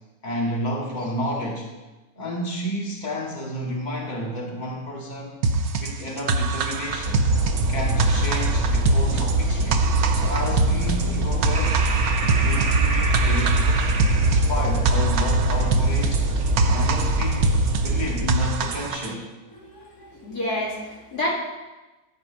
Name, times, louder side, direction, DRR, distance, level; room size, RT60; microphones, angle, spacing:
voice 1, 0.2-1.7 2.2-5.4 5.7-7.2 7.7-11.8 12.4-16.2 16.7-17.5 17.8-19.3, equal, 30° left, -2 dB, 2.1 m, -31 dB
sound 1, 5.4-19.1, right 3 dB, 70° right, 1.3 m, -25 dB
sound 2, 6.8-18.8, right 2 dB, 50° right, 1.4 m, -23 dB
voice 2, 19.6-21.3, left 1 dB, 80° left, -3 dB, 2.8 m, -29 dB
13.5 x 4.8 x 8.1 m, 1.1 s
omnidirectional pair, 1.7 m